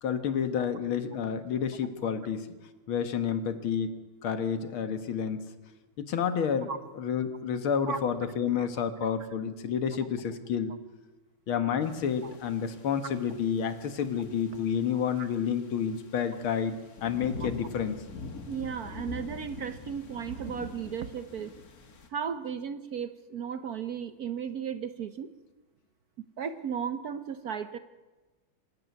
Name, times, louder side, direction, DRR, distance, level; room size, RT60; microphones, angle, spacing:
voice 1, 0.0-2.5 2.9-3.9 4.2-5.4 6.0-6.7 7.0-10.7 11.5-18.0, left 7 dB, 75° left, 10 dB, 2.2 m, -30 dB
sound 1, 11.8-22.1, left 3 dB, 45° left, 2.1 m, -45 dB
voice 2, 14.9-15.3 17.4-17.5 18.5-21.5 22.1-25.3 26.4-27.8, right 7 dB, 60° right, 11 dB, 1.0 m, -35 dB
25.0 x 12.5 x 9.5 m, 1.2 s
omnidirectional pair, 2.4 m